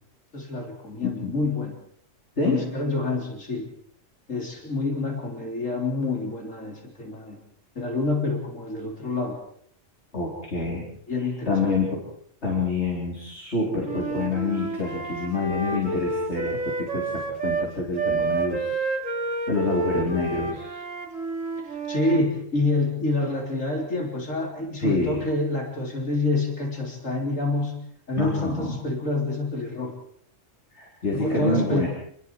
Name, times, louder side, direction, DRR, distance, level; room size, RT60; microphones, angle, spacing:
voice 1, 0.3-1.8 2.4-3.7 4.3-7.4 7.8-9.4 11.1-11.7 21.9-27.8 28.1-30.0 31.1-31.9, left 2 dB, 80° left, 1 dB, 4.1 m, -27 dB
voice 2, 10.1-10.8 11.5-12.0 12.4-19.1 19.5-20.7 24.8-25.2 28.1-28.8 30.7-31.9, left 3 dB, 60° left, -3 dB, 4.3 m, -27 dB
Wind instrument woodwind instrument, 13.8-17.7 17.9-22.3, right 3 dB, 80° right, 2.6 m, -29 dB
27.5 x 20.5 x 4.8 m, 0.63 s
omnidirectional pair, 1.3 m